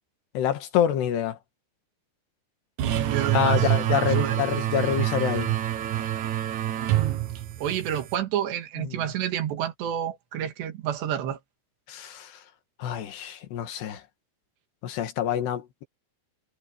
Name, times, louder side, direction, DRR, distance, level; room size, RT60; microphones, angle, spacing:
voice 1, 0.4-1.4 3.3-5.6 8.8-9.0 11.9-12.4 12.8-14.0 14.8-15.8, left 10 dB, 80° left, 4.0 m, -27 dB
sound 1, 2.8-8.2, right 13 dB, 65° right, 2.0 m, -26 dB
voice 2, 2.9-4.3 6.9-7.3 7.6-11.4, right 10 dB, 85° right, 4.1 m, -30 dB
omnidirectional pair, 4.8 m